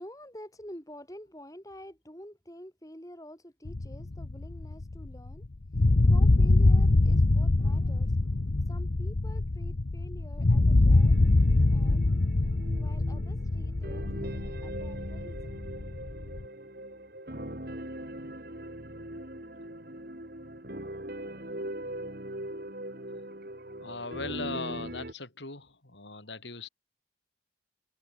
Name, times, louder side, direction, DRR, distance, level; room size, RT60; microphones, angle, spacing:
voice 1, 0.0-5.4 5.7-11.2 11.7-12.1 12.4-15.5, equal, 20° left, 6.1 m, -49 dB
sound 1, 3.7-5.5 5.7-16.5, left 2 dB, 55° left, 0.7 m, -24 dB
sound 2, 10.9-25.1, right 1 dB, 55° right, 3.9 m, -41 dB
voice 2, 23.8-26.7, left 3 dB, 75° left, 4.5 m, -39 dB
head